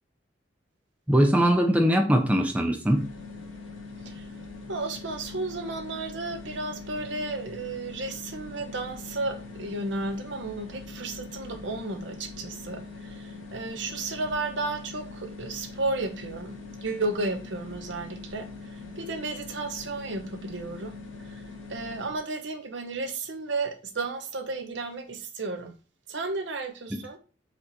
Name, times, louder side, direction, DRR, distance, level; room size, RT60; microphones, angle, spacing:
voice 1, 1.1-3.0 26.9-27.0, equal, 5° right, 0.5 m, -21 dB
sound 1, 2.9-22.2, left 3 dB, 85° left, 1.5 m, -42 dB
voice 2, 4.7-20.9 21.2-21.4 21.7-25.7 26.1-27.2, right 3 dB, 65° right, 0.8 m, -33 dB
4.3 x 3.0 x 4.0 m
head